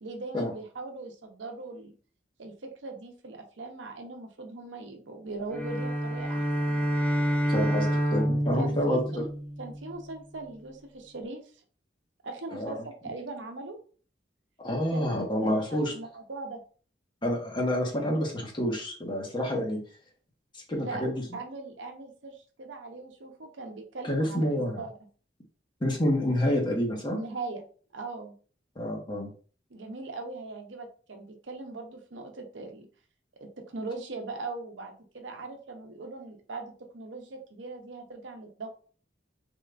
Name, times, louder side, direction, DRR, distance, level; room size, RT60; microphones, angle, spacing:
voice 1, 0.0-1.9 2.4-7.0 8.6-9.3 9.6-11.5 12.2-13.8 14.9-16.6 20.8-21.1 21.3-24.9 27.1-27.6 27.9-28.3 29.7-32.9 33.4-38.7, right 3 dB, 85° right, 4 dB, 0.7 m, -40 dB
sound 1, 5.5-9.9, equal, 10° left, 0.6 m, -28 dB
voice 2, 7.5-9.2 12.5-12.8 14.6-15.9 17.2-19.8 20.5-21.2 24.0-24.8 25.8-27.2 28.8-29.3, equal, 25° left, 0 dB, 1.0 m, -28 dB
3.7 x 2.4 x 3.3 m, 0.41 s
head